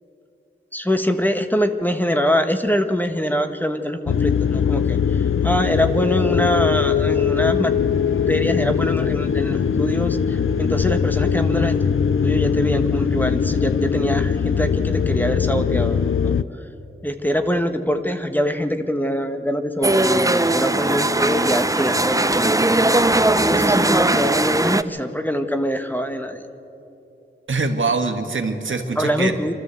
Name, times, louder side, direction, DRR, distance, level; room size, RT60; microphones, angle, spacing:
voice 1, 0.7-7.7 8.3-11.7 12.2-16.3 17.0-23.1 23.4-26.4 29.0-29.5, equal, 10° left, 7 dB, 1.3 m, -24 dB
sound 1, 4.1-16.4, left 7 dB, 75° left, 0.5 m, -21 dB
sound 2, 19.8-24.8, right 2 dB, 15° right, 0.6 m, -19 dB
voice 2, 27.5-29.5, right 3 dB, 70° right, 5 dB, 1.6 m, -24 dB
25.0 x 13.0 x 8.1 m, 2.8 s
wide cardioid pair, 50°, 21 cm